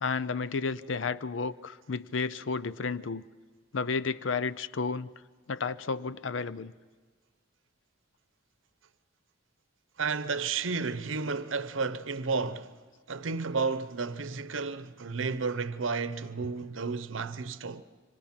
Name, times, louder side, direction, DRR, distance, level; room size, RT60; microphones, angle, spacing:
voice 1, 0.0-3.2 3.7-5.1 5.5-6.7, left 4 dB, 75° left, 0.6 m, -32 dB
voice 2, 10.0-12.7 13.1-17.8, right 4 dB, 90° right, 0.9 m, -32 dB
26.5 x 25.0 x 5.9 m
head